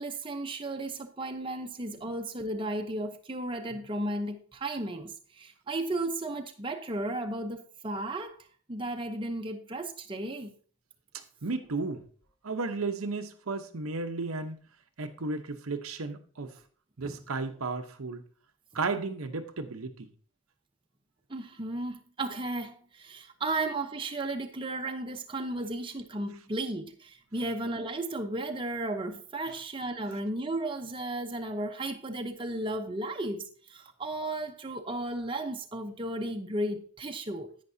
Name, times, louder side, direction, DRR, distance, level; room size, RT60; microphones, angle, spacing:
voice 1, 0.0-8.4 8.7-10.5 17.0-17.2 21.3-37.6, right 2 dB, 25° right, 0.8 m, -34 dB
voice 2, 11.4-12.0 12.4-14.6 15.0-16.5 17.0-18.2 18.7-20.1, right 3 dB, 85° right, 0.9 m, -34 dB
10.5 x 9.0 x 2.7 m
head